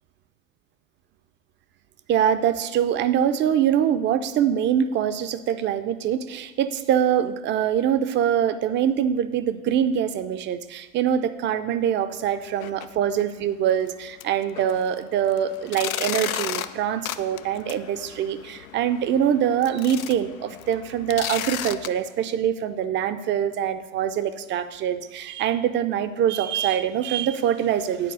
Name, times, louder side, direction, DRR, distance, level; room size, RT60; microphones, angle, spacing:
voice 1, 2.1-28.1, right 9 dB, 30° right, 12 dB, 0.5 m, -24 dB
sound 1, 12.5-12.8 13.2-13.3 13.8-13.9 14.2-21.9, left 11 dB, 85° left, 0.5 m, -34 dB
9.7 x 4.6 x 6.3 m, 1.2 s
hypercardioid pair, 90°, 41 cm